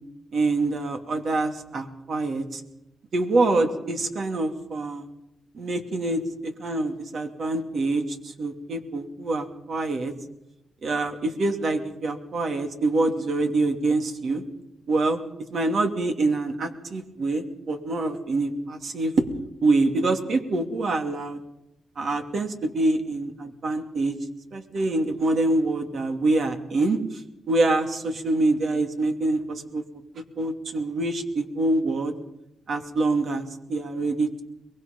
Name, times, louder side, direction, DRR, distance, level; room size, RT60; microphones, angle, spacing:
voice 1, 0.3-2.6 3.1-5.1 5.5-10.1 10.8-14.4 14.9-15.2 15.5-19.3 19.6-21.4 22.0-24.2 24.5-27.0 27.5-29.8 30.4-32.1 32.7-34.4, right 2 dB, 60° right, 5 dB, 2.7 m, -25 dB
23.0 x 20.5 x 5.4 m, 0.87 s
cardioid pair, 75°, 0 cm